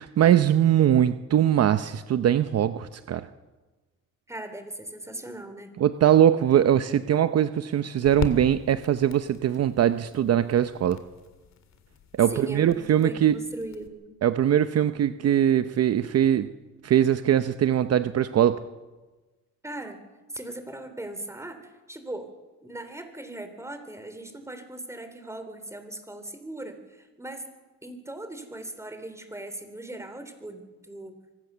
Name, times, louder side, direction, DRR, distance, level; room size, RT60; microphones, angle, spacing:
voice 1, 0.0-3.3 5.8-11.0 12.1-13.4 14.2-16.5 16.8-18.6, right 10 dB, 55° right, 11 dB, 0.8 m, -21 dB
voice 2, 4.3-5.7 12.3-14.1 19.6-20.0 20.3-22.3 22.6-27.5 27.8-31.2, right 1 dB, 10° right, 8 dB, 3.5 m, -39 dB
sound 1, 6.0-13.9, left 7 dB, 65° left, 2.3 m, -41 dB
24.5 x 15.5 x 6.9 m, 1.2 s
cardioid pair, 90°, 30 cm